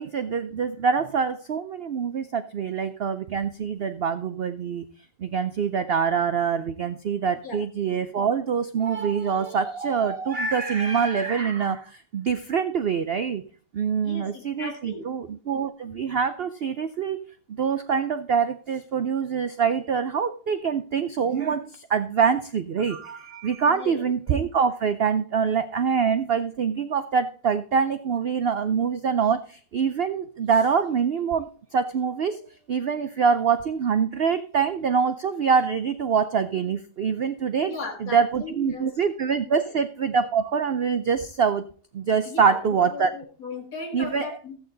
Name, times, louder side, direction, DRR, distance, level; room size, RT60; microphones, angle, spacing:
voice 1, 0.0-4.9 5.2-13.4 13.7-17.2 17.5-37.7 38.0-41.7 41.9-43.1 43.9-44.3, right 6 dB, 75° right, 10 dB, 0.5 m, -25 dB
voice 2, 14.0-15.1 23.7-24.4 37.7-38.9 39.5-39.7 42.2-44.5, left 3 dB, 55° left, 1 dB, 2.6 m, -37 dB
13.5 x 8.4 x 3.9 m, 0.42 s
omnidirectional pair, 1.8 m